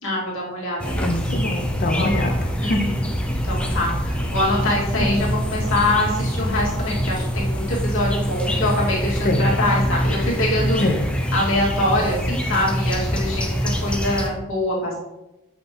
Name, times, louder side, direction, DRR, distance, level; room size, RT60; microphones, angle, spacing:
voice 1, 0.0-1.1 1.9-2.2 2.6-3.0 3.4-10.8 11.3-14.9, left 1 dB, 65° left, -4 dB, 2.1 m, -24 dB
sound 1, 0.8-14.3, equal, 5° left, 0.5 m, -24 dB
voice 2, 0.9-2.3 2.6-2.8 5.0-5.2 9.2-9.5 10.8-11.0, left 2 dB, 40° left, 4 dB, 0.9 m, -24 dB
7.6 x 5.3 x 3.0 m, 0.97 s
head